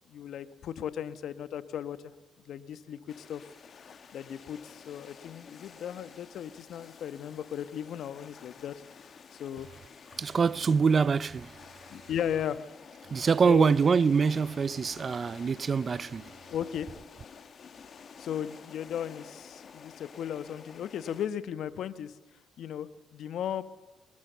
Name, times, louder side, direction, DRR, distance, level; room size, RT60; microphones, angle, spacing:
voice 1, 0.1-2.0 2.4-3.5 4.1-8.7 9.4-9.7 11.9-12.6 13.4-13.7 16.5-16.9 18.2-22.1 22.6-23.6, left 9 dB, 70° left, 1.3 m, -36 dB
sound 1, 3.1-21.3, left 6 dB, 50° left, 1.9 m, -51 dB
voice 2, 10.2-11.5 13.1-16.3, right 5 dB, 40° right, 0.6 m, -25 dB
24.0 x 19.0 x 6.9 m
cardioid pair, 90°, 0 cm